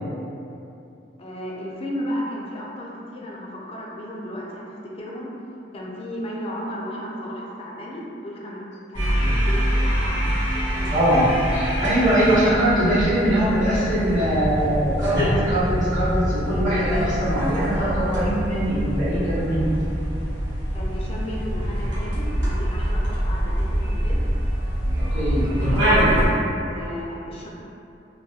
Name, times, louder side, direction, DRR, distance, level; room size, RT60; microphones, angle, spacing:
voice 1, 1.2-5.3 5.7-10.2 10.5-11.3 20.7-24.3 25.5-27.5, equal, 35° left, -3 dB, 0.4 m, -34 dB
sound 1, 8.9-26.3, equal, 90° right, 0.9 m, -24 dB
voice 2, 10.9-11.3 11.5-19.7 25.0-25.5, right 1 dB, 35° right, -16 dB, 0.9 m, -22 dB
2.3 x 2.2 x 2.7 m, 2.7 s
head